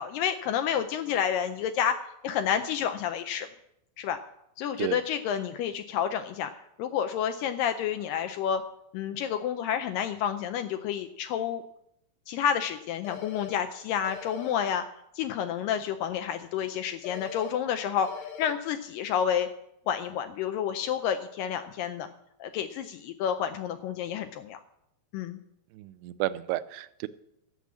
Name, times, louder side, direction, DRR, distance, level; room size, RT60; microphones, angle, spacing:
voice 1, 0.0-3.5 4.0-4.2 4.6-6.5 6.8-8.6 8.9-11.6 12.3-14.8 15.2-18.1 18.4-19.5 19.9-22.1 22.4-24.6 25.1-25.4, left 8 dB, 90° left, 1.9 m, -29 dB
sound 1, 13.0-13.5 14.0-14.5 17.0-17.5 18.0-18.5, left 9 dB, 65° left, 1.8 m, -40 dB
voice 2, 25.7-27.1, right 15 dB, 85° right, 2.6 m, -32 dB
14.0 x 6.2 x 8.4 m
omnidirectional pair, 4.7 m